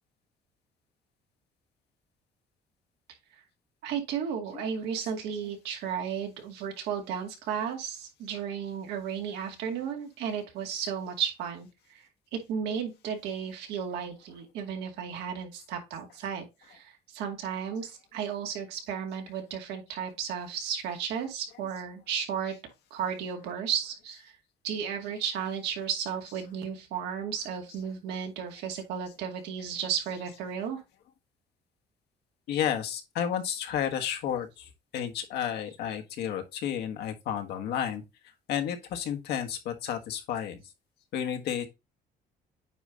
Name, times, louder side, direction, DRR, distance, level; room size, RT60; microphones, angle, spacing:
voice 1, 3.8-22.5 22.9-24.3 24.6-30.8, right 7 dB, 90° right, 2.3 m, -34 dB
voice 2, 32.5-34.5 34.9-38.0 38.5-40.6 41.1-41.7, left 9 dB, 80° left, 1.4 m, -31 dB
9.1 x 3.2 x 3.8 m
cardioid pair, 110°, 17 cm